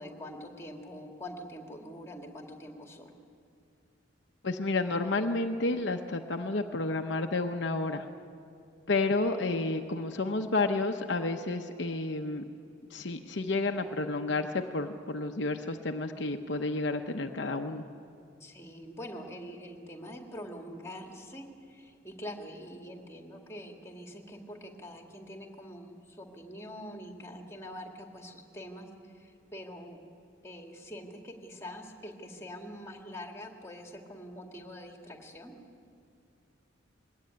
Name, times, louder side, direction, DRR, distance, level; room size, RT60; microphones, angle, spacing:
voice 1, 0.0-3.1 18.4-28.9 29.1-30.0 30.4-35.5, equal, 15° left, 2 dB, 2.1 m, -44 dB
voice 2, 4.4-8.0 8.9-12.4 12.9-17.8, left 3 dB, 60° left, 5 dB, 0.8 m, -31 dB
21.5 x 17.0 x 9.1 m, 2.5 s
head